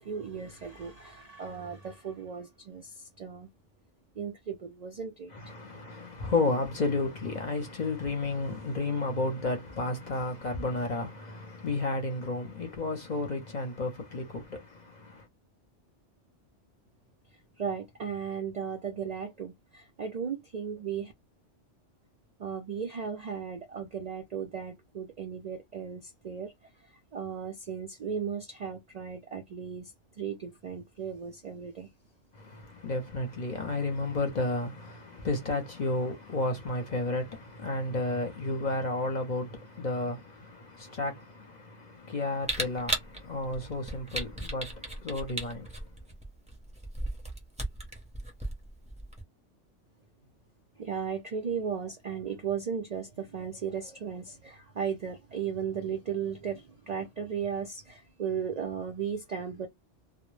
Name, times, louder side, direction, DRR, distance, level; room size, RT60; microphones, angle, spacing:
voice 1, 0.0-2.9 3.2-3.5 4.2-5.3 17.6-21.1 22.4-26.5 27.1-29.9 30.2-31.9 50.8-59.7, right 7 dB, 75° right, 0.3 m, -36 dB
voice 2, 5.3-15.3 32.3-45.9, left 2 dB, 45° left, 0.6 m, -32 dB
Camera, 42.4-49.2, right 1 dB, 10° right, 0.5 m, -36 dB
2.1 x 2.0 x 3.1 m
omnidirectional pair, 1.3 m